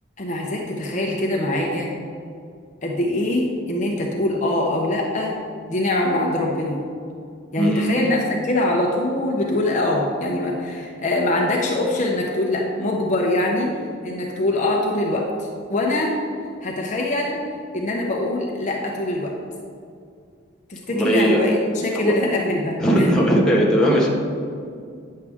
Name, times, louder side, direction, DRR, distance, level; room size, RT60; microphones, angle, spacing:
voice 1, 0.2-1.9 2.8-5.3 5.7-6.8 7.5-13.7 14.0-15.3 15.7-16.1 16.6-17.4 17.7-19.3 20.7-23.1, left 1 dB, 35° left, -1 dB, 0.8 m, -23 dB
voice 2, 7.6-7.9 20.9-21.4 21.9-22.1 22.8-24.1, equal, 5° left, -4 dB, 1.2 m, -18 dB
9.6 x 6.5 x 3.6 m, 2.3 s
head